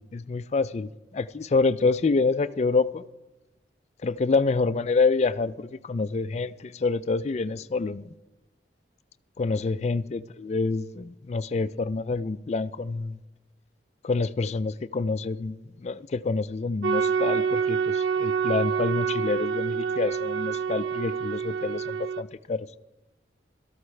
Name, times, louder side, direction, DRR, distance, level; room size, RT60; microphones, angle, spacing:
voice 1, 0.0-3.0 4.0-8.1 9.4-13.2 14.0-22.7, left 4 dB, 35° left, 0.3 m, -27 dB
sound 1, 16.8-22.2, right 6 dB, 80° right, 0.4 m, -27 dB
17.5 x 13.5 x 3.3 m
head